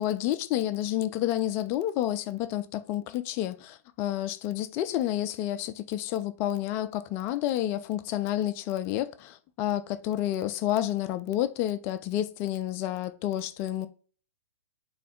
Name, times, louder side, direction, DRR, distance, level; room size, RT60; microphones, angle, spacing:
voice 1, 0.0-13.9, left 13 dB, 30° left, 0.4 m, -30 dB
4.2 x 3.1 x 3.6 m
figure-of-eight pair, 110°, 9 cm